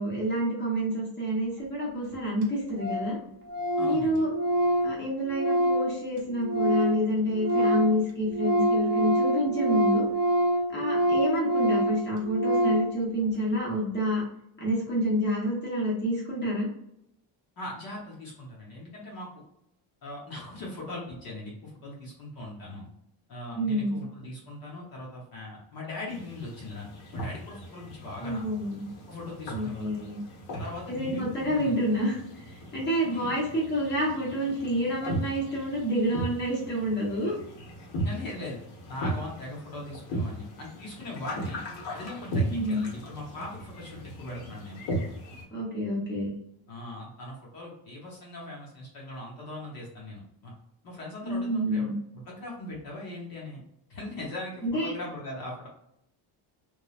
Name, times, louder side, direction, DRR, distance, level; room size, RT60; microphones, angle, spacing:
voice 1, 0.0-3.2 3.8-4.3 4.8-10.1 10.7-14.2 14.6-16.7 23.5-24.0 28.2-28.8 29.5-30.2 30.9-32.2 32.7-37.3 42.5-42.8 45.5-46.3 51.2-51.9 54.6-54.9, equal, 20° left, -4 dB, 0.9 m, -28 dB
Organ, 1.8-1.9 2.1-2.2 2.4-2.5 2.8-3.2 3.4-7.0 7.3-13.0, equal, 45° right, 0.7 m, -26 dB
voice 2, 3.8-4.2 17.6-19.4 20.0-22.9 23.3-28.4 29.1-29.9 30.6-31.7 33.1-33.3 38.0-38.6 38.9-41.6 41.9-44.8 46.7-50.5 50.8-53.6 53.9-55.7, left 1 dB, 45° left, -4 dB, 0.8 m, -40 dB
sound 1, 26.1-45.4, right 1 dB, 85° left, 1.2 m, -37 dB
3.1 x 2.3 x 2.3 m, 0.76 s
cardioid pair, 180°, 49 cm